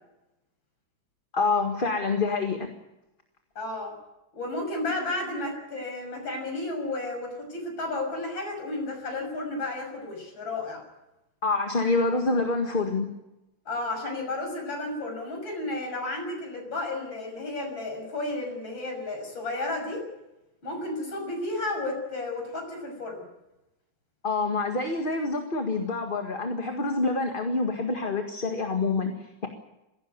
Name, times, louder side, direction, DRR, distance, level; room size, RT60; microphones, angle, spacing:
voice 1, 1.3-2.7 11.4-13.1 24.2-29.5, left 3 dB, 30° left, 4 dB, 1.9 m, -27 dB
voice 2, 3.6-4.0 4.3-10.8 13.7-20.1 20.6-23.2, left 2 dB, 80° left, 2 dB, 7.3 m, -32 dB
22.5 x 16.5 x 9.5 m, 0.94 s
omnidirectional pair, 2.1 m